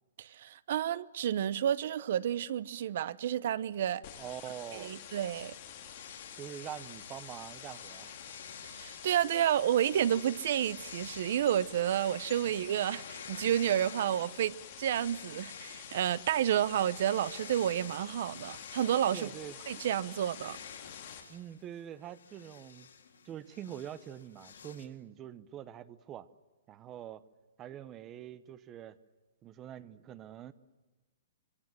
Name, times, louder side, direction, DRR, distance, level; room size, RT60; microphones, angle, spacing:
voice 1, 0.2-4.0 4.7-5.5 8.7-19.3 19.7-20.6, right 10 dB, 45° right, 0.8 m, -30 dB
sound 1, 4.0-21.2, left 9 dB, 30° left, 4.1 m, -49 dB
voice 2, 4.2-4.9 6.3-8.2 19.1-19.6 21.3-22.9 23.2-26.3 26.7-27.2 27.6-28.9 29.4-30.5, right 10 dB, 15° right, 0.8 m, -45 dB
sound 2, 5.8-9.2 9.7-11.4 11.9-14.5 14.8-24.8, left 7 dB, 80° left, 4.6 m, -50 dB
26.0 x 24.5 x 7.6 m
hypercardioid pair, 175°, 0 cm